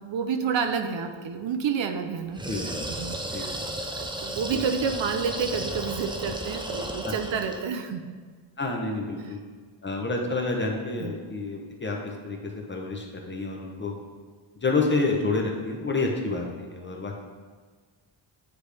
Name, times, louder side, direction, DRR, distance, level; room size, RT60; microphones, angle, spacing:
voice 1, 0.0-2.7 3.0-3.6 3.9-8.1 9.2-9.3 11.0-11.1, right 6 dB, 75° right, 6 dB, 0.6 m, -30 dB
sound 1, 2.3-7.7, right 1 dB, 10° right, 0.4 m, -34 dB
voice 2, 8.6-9.4 9.8-13.9 14.6-17.1, left 3 dB, 25° left, 1 dB, 0.8 m, -29 dB
9.6 x 3.3 x 3.4 m, 1.5 s
wide cardioid pair, 140°, 46 cm